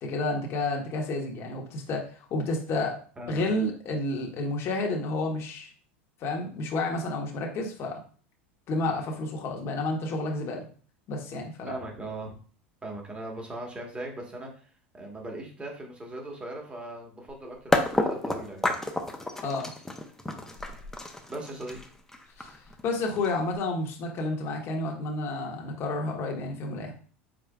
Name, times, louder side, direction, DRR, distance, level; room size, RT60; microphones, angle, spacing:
voice 1, 0.0-3.0 3.3-5.7 6.2-8.0 8.7-10.6 11.1-11.7 19.4-19.7 22.4-22.5 22.8-26.9, left 2 dB, 45° left, 1 dB, 1.3 m, -30 dB
voice 2, 11.7-12.3 12.8-18.7 21.3-21.9, right 2 dB, 15° right, 1 dB, 1.5 m, -39 dB
sound 1, 17.3-17.4 17.7-23.6, left 1 dB, 5° left, 0.8 m, -30 dB
5.0 x 4.1 x 2.4 m, 0.42 s
hypercardioid pair, 90°, 6 cm